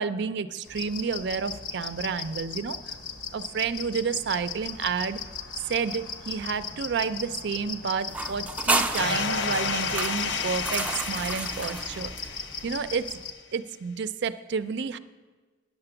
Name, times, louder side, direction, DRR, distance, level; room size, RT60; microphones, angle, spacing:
voice 1, 0.0-3.0 3.3-5.2 5.6-12.1 12.6-13.1 13.5-15.0, right 5 dB, 65° right, 12 dB, 0.4 m, -30 dB
sound 1, 0.6-13.3, left 4 dB, 85° left, 1.1 m, -38 dB
sound 2, 8.1-12.7, right 2 dB, 10° right, 0.5 m, -31 dB
sound 3, 9.0-13.0, left 5 dB, 70° left, 0.5 m, -32 dB
9.3 x 6.8 x 6.9 m, 1.3 s
head